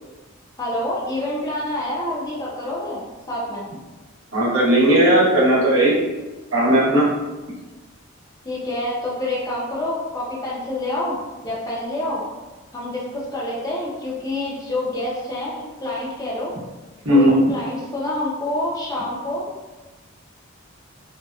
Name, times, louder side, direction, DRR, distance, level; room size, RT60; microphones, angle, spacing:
voice 1, 0.6-3.0 3.3-3.6 8.4-11.2 11.4-12.2 12.7-16.5 17.1-19.5, left 1 dB, 15° left, -6 dB, 0.5 m, -27 dB
voice 2, 4.3-5.9 6.5-7.1 17.0-17.4, right 1 dB, 80° right, -6 dB, 0.8 m, -16 dB
2.7 x 2.1 x 2.3 m, 1.2 s
head